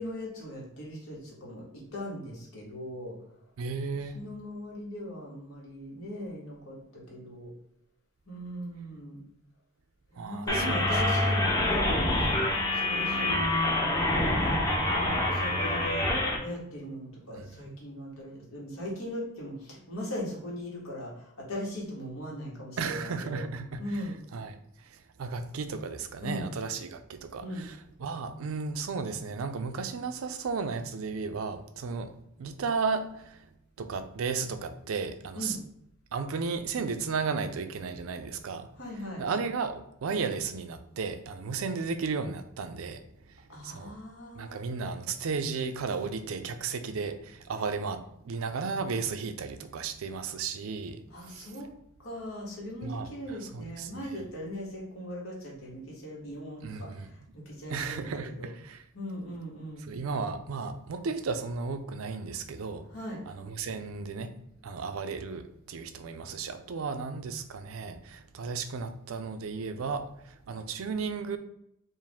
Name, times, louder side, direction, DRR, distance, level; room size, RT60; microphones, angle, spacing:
voice 1, 0.0-3.1 4.0-7.5 8.3-9.2 10.1-13.8 14.4-14.9 15.3-16.1 16.4-23.4 23.8-24.2 26.2-26.5 27.4-27.7 35.3-35.6 38.7-39.2 43.5-44.6 51.1-51.7 52.0-58.5 58.9-59.8 62.9-63.2, equal, 85° left, 1.5 m, -39 dB
voice 2, 3.6-4.2 10.2-11.0 17.3-17.5 22.8-33.5 33.8-35.6 36.1-38.7 39.2-43.9 44.4-51.5 52.8-54.1 56.6-57.1 57.7-58.8 59.9-62.9 63.3-64.3 64.6-71.4, right 5 dB, 85° right, 0.4 m, -34 dB
sound 1, 10.5-16.4, left 1 dB, 15° left, 0.7 m, -26 dB
4.6 x 2.5 x 3.5 m
head